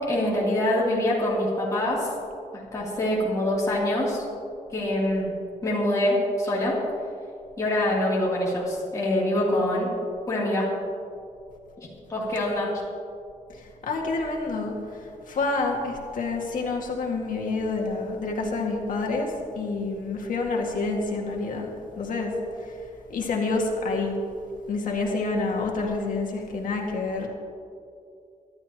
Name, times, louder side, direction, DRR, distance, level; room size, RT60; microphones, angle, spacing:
voice 1, 0.1-2.1 2.7-4.2 4.7-5.3 5.6-6.7 7.6-9.9 10.3-10.6 12.1-12.7, left 1 dB, 25° left, -7 dB, 3.1 m, -24 dB
voice 2, 13.8-22.3 22.7-22.8 23.1-24.1 24.7-27.3, left 3 dB, 85° left, 0 dB, 2.1 m, -28 dB
24.5 x 12.0 x 3.0 m, 2.5 s
wide cardioid pair, 165°, 13 cm